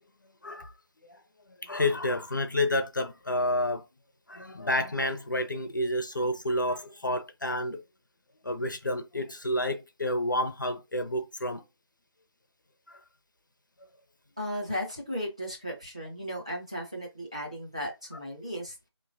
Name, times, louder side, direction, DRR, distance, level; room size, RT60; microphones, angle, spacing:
voice 1, 0.4-0.8 1.1-1.2 1.6-3.8 4.3-7.8 8.4-11.6 12.9-13.0, left 1 dB, 45° left, 0.5 m, -29 dB
voice 2, 14.4-18.8, equal, 15° right, 0.5 m, -35 dB
4.7 x 3.0 x 2.6 m
figure-of-eight pair, 175°, 15 cm